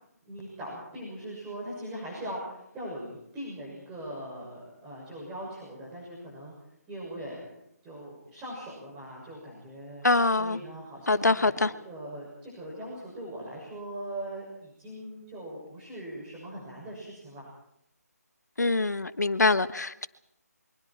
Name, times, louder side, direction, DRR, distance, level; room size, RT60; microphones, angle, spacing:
voice 1, 0.2-6.5 6.9-7.5 7.8-10.1 10.4-17.5, right 1 dB, 15° right, 6.7 m, -40 dB
voice 2, 10.0-10.6 11.1-11.7 18.6-20.1, left 3 dB, 80° left, 1.3 m, -24 dB
28.5 x 23.5 x 4.5 m
figure-of-eight pair, 155°, 9 cm